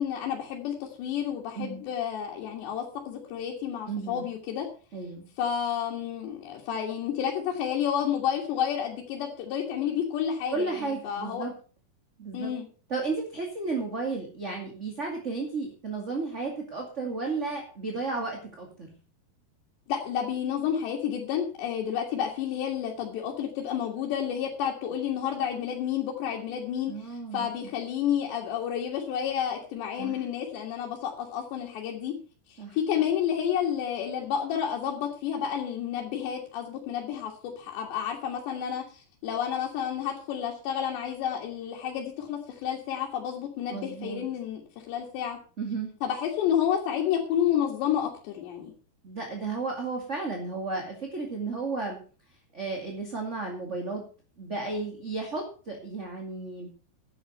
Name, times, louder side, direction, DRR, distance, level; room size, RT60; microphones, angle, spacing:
voice 1, 0.0-4.7 5.4-11.5 12.3-12.7 19.9-32.1 32.5-44.6 44.9-45.4 46.0-48.7, left 9 dB, 90° left, -1 dB, 4.1 m, -30 dB
voice 2, 1.5-1.8 3.9-4.3 4.9-5.2 10.5-11.5 12.2-12.5 12.9-18.9 26.9-27.5 30.0-30.2 32.6-32.8 43.7-44.2 45.6-45.9 49.0-52.0 52.5-54.0 54.4-56.7, right 3 dB, 25° right, 1 dB, 1.8 m, -33 dB
11.5 x 9.2 x 6.6 m, 0.38 s
omnidirectional pair, 4.8 m